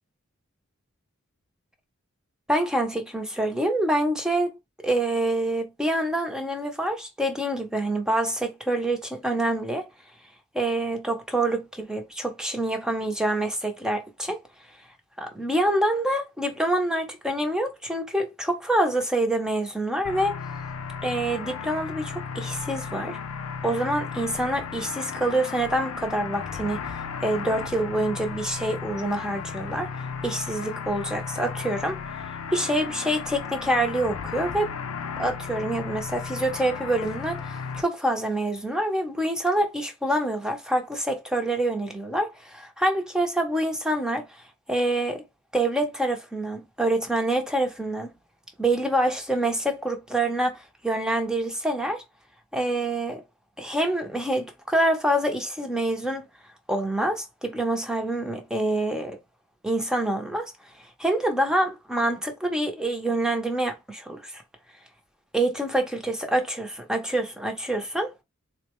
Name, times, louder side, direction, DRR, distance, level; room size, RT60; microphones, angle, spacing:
voice 1, 2.5-4.5 4.8-9.9 10.5-14.4 15.2-20.4 21.0-23.2 23.6-26.8 27.2-29.9 30.2-32.0 32.5-34.7 35.2-44.3 44.7-45.2 45.5-48.1 48.6-52.0 52.5-53.2 53.6-56.3 56.7-59.2 59.6-60.5 61.0-64.4 65.3-68.2, right 1 dB, 5° right, 0.7 m, -26 dB
sound 1, 20.0-37.8, left 6 dB, 85° left, 0.5 m, -35 dB
3.9 x 2.1 x 3.0 m
head